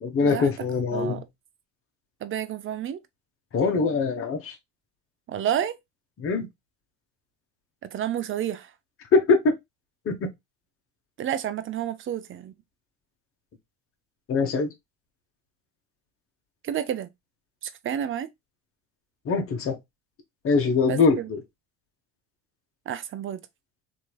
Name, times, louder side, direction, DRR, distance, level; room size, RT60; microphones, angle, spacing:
voice 1, 0.0-1.2 3.5-4.5 6.2-6.5 9.1-9.5 10.1-10.3 14.3-14.7 19.2-19.8 20.4-21.4, left 4 dB, 40° left, 0.9 m, -23 dB
voice 2, 0.9-1.2 2.2-3.0 5.3-5.8 7.8-8.7 11.2-12.5 16.6-17.1 17.6-18.3 20.9-21.3 22.9-23.4, right 10 dB, 35° right, 0.5 m, -30 dB
3.0 x 2.7 x 2.2 m
hypercardioid pair, 70°, 35 cm